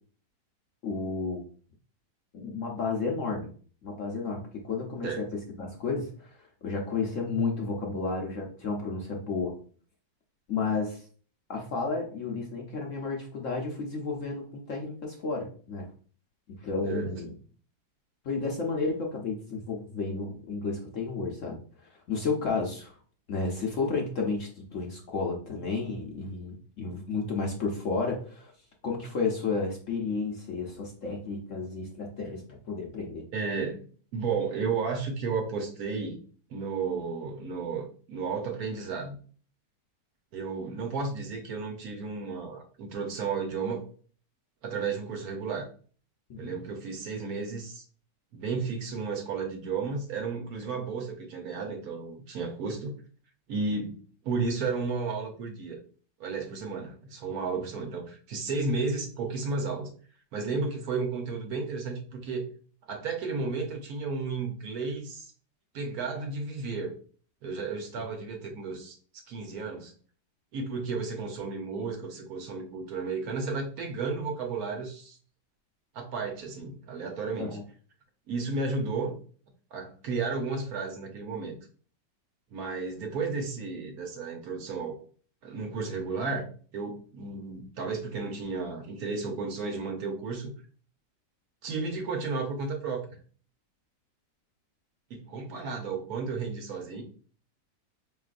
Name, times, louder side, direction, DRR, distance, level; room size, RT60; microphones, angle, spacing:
voice 1, 0.8-1.5 2.3-3.5 3.8-5.3 5.6-6.4 6.6-9.6 10.5-11.0 11.5-15.9 16.6-17.3 18.2-21.6 22.1-22.9 23.3-28.5 28.8-33.2 46.3-46.5 77.4-77.6, left 4 dB, 60° left, 0 dB, 0.9 m, -32 dB
voice 2, 16.8-17.3 33.3-33.9 34.1-36.2 36.5-39.2 40.3-43.8 44.6-45.7 46.4-47.8 48.3-52.9 53.5-54.0 54.2-55.8 56.2-59.9 60.3-62.5 62.9-65.3 65.7-66.9 67.4-69.0 69.3-69.9 70.5-75.2 75.9-77.6 78.3-79.2 79.7-81.6 82.5-85.0 85.4-90.5 91.6-93.1 95.1-97.0, right 4 dB, 65° right, 3 dB, 1.1 m, -33 dB
5.0 x 3.1 x 2.4 m, 0.42 s
omnidirectional pair, 1.9 m